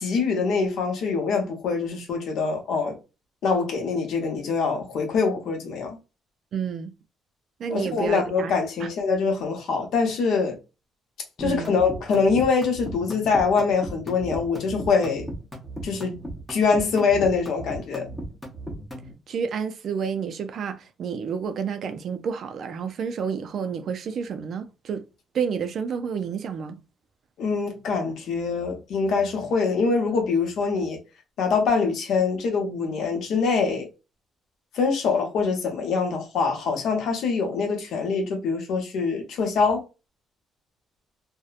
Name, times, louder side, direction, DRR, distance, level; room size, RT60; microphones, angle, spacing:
voice 1, 0.0-3.0 3.4-6.0 7.7-10.6 11.4-15.2 15.8-16.1 16.5-18.1 27.4-31.0 31.4-33.9 34.7-39.8, left 4 dB, 70° left, 0.8 m, -24 dB
voice 2, 6.5-6.9 7.6-8.5 8.8-8.9 11.4-11.8 19.3-25.0 25.3-26.8, right 6 dB, 50° right, 0.3 m, -30 dB
sound 1, 11.4-19.1, right 1 dB, 10° left, 0.6 m, -36 dB
2.7 x 2.1 x 2.4 m
cardioid pair, 165°, 0 cm